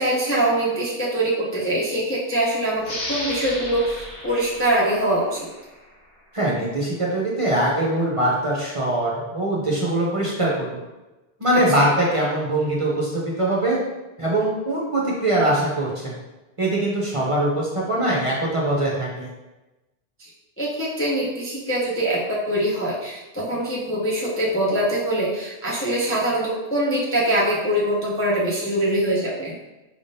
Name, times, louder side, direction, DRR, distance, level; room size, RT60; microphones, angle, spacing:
voice 1, 0.0-5.5 11.5-11.6 20.6-22.2 22.5-29.5, right 1 dB, 15° left, -6 dB, 0.5 m, -23 dB
sound 1, 2.8-6.1, left 1 dB, 55° left, 1.4 m, -34 dB
voice 2, 6.3-10.8 11.4-13.8 14.2-16.2 16.6-19.3, right 1 dB, 30° right, -5 dB, 0.8 m, -22 dB
4.9 x 3.5 x 2.7 m, 1.1 s
omnidirectional pair, 1.2 m